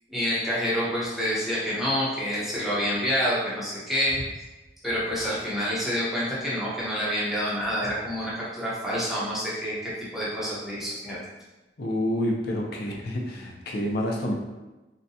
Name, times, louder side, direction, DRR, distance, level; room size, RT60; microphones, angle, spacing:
voice 1, 0.1-4.2 4.8-11.2, equal, ahead, -8 dB, 0.8 m, -28 dB
voice 2, 11.8-14.3, left 1 dB, 60° left, -1 dB, 0.6 m, -28 dB
3.9 x 2.2 x 2.7 m, 1.1 s
head